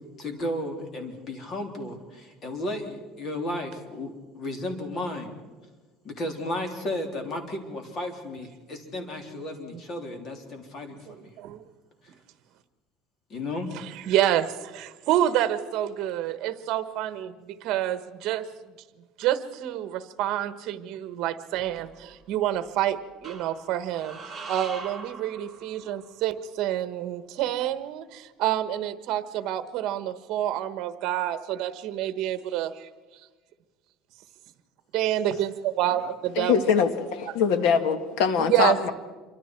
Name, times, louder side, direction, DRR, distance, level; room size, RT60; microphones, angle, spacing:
voice 1, 0.2-5.3 6.0-11.3 13.3-13.7 35.3-35.4 35.9-36.1, left 1 dB, 35° left, 4 dB, 3.3 m, -34 dB
voice 2, 11.1-11.6 14.1-18.5 19.2-24.2 24.5-32.7 34.9-36.5 38.4-38.9, right 12 dB, 55° right, 12 dB, 1.3 m, -28 dB
sound 1, 21.5-22.4 23.2-26.1, right 4 dB, 5° right, 3.8 m, -42 dB
voice 3, 36.4-38.9, left 6 dB, 70° left, 9 dB, 2.0 m, -23 dB
27.0 x 24.5 x 4.6 m, 1.3 s
cardioid pair, 150°, 0 cm